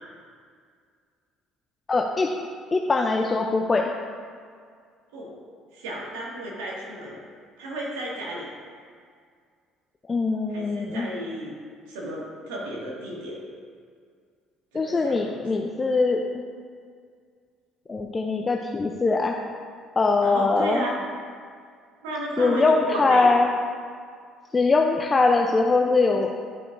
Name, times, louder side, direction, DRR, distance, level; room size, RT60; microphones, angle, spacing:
voice 1, 1.9-2.3 2.7-3.9 10.1-11.1 14.7-16.4 17.9-19.3 20.0-20.8 22.4-23.5 24.5-26.5, left 3 dB, 30° left, 2 dB, 0.6 m, -22 dB
voice 2, 5.7-7.2 7.6-8.5 10.5-11.6 11.9-13.4 14.7-15.4 20.2-21.0 22.0-23.3, right 1 dB, 80° right, -5 dB, 2.1 m, -33 dB
12.0 x 5.6 x 2.6 m, 2.1 s
hypercardioid pair, 60°, 0 cm